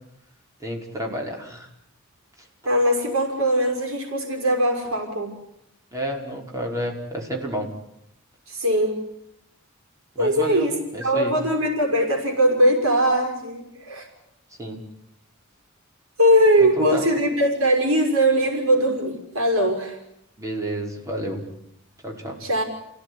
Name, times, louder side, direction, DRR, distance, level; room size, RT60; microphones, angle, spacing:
voice 1, 0.6-1.7 5.9-7.7 10.2-11.4 14.6-14.8 16.6-17.0 20.4-21.4 22.0-22.4, equal, 15° right, 0 dB, 5.5 m, -30 dB
voice 2, 2.7-5.3 8.5-9.0 10.2-10.8 11.0-14.1 16.2-20.0 22.4-22.6, equal, 80° right, 3 dB, 5.9 m, -20 dB
28.5 x 17.0 x 9.9 m, 0.79 s
head